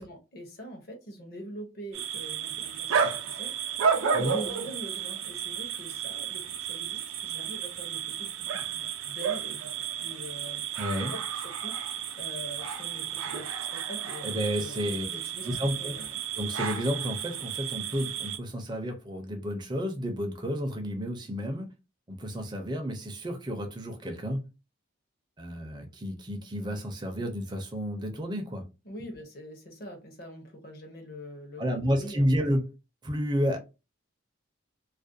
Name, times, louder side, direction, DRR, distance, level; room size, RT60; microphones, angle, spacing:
voice 1, 0.0-3.7 4.0-9.7 10.0-10.8 11.1-14.3 14.6-16.2 28.8-32.3, right 1 dB, 45° left, 0.7 m, -43 dB
sound 1, 1.9-18.4, right 7 dB, 80° right, 0.4 m, -32 dB
voice 2, 10.8-11.2 14.2-15.1 15.4-15.9 16.4-21.7 22.1-24.4 25.4-28.6 31.6-32.7 33.0-33.6, equal, 20° right, 0.4 m, -31 dB
2.4 x 2.1 x 2.6 m
head